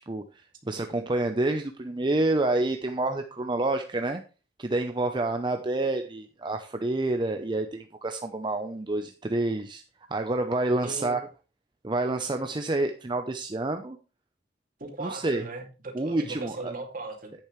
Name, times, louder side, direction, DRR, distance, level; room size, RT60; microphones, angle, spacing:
voice 1, 0.1-4.2 4.6-9.8 10.1-11.2 11.8-14.0 15.0-15.4 15.9-16.7, right 2 dB, 25° right, 6 dB, 0.7 m, -28 dB
voice 2, 10.8-11.2 14.8-17.3, right 3 dB, 50° right, 3 dB, 2.5 m, -38 dB
10.5 x 8.8 x 3.2 m, 0.33 s
head